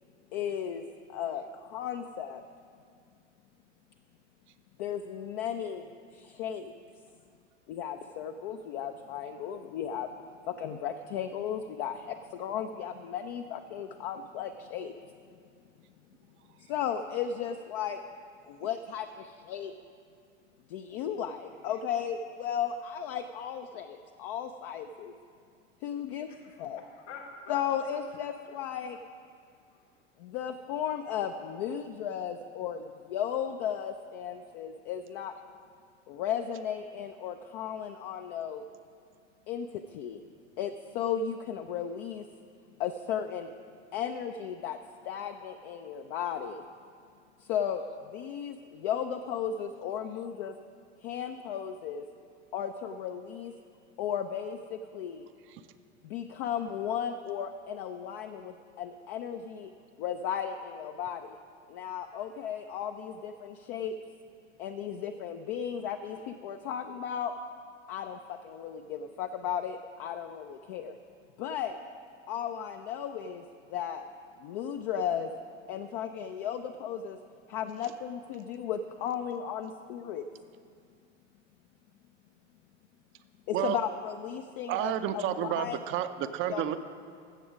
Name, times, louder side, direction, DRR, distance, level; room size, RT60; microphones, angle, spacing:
voice 1, 0.3-0.8 1.1-2.4 4.8-5.9 6.1-6.7 7.7-10.1 10.4-14.9 16.7-18.0 18.4-19.7 20.7-25.1 25.8-26.8 27.5-29.0 30.2-35.3 36.1-38.7 39.5-40.2 40.6-42.3 42.8-43.5 43.9-46.6 47.4-47.8 48.1-50.6 51.0-52.0 52.5-53.5 54.0-55.2 56.0-59.7 60.0-61.4 61.7-64.0 64.6-67.3 67.9-71.0 71.4-71.8 72.3-73.4 73.7-74.0 74.4-75.3 75.7-77.2 77.5-80.3 83.5-85.8 86.5-86.7, left 8 dB, 50° left, 6 dB, 0.5 m, -35 dB
voice 2, 26.3-27.6 28.2-28.5 29.4-29.9, left 5 dB, 70° left, 1 dB, 1.6 m, -49 dB
voice 3, 84.7-86.8, right 10 dB, 35° right, 11 dB, 0.6 m, -30 dB
15.5 x 7.0 x 5.0 m, 2.3 s
figure-of-eight pair, 85°, 37 cm